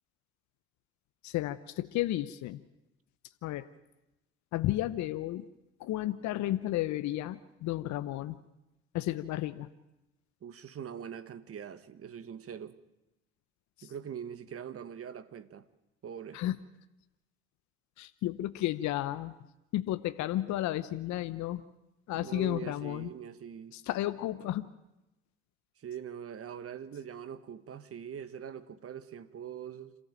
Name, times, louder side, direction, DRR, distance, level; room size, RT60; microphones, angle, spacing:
voice 1, 1.2-2.6 3.4-3.7 4.5-5.5 5.8-8.4 8.9-9.7 13.8-13.9 16.3-16.6 18.0-19.3 19.7-21.6 22.1-23.1 23.7-24.7, left 14 dB, 65° left, 1.0 m, -32 dB
voice 2, 10.4-12.8 13.8-15.7 16.0-16.4 22.2-23.8 25.8-30.0, right 8 dB, 45° right, 1.7 m, -43 dB
27.0 x 14.0 x 9.1 m
hypercardioid pair, 60°, 31 cm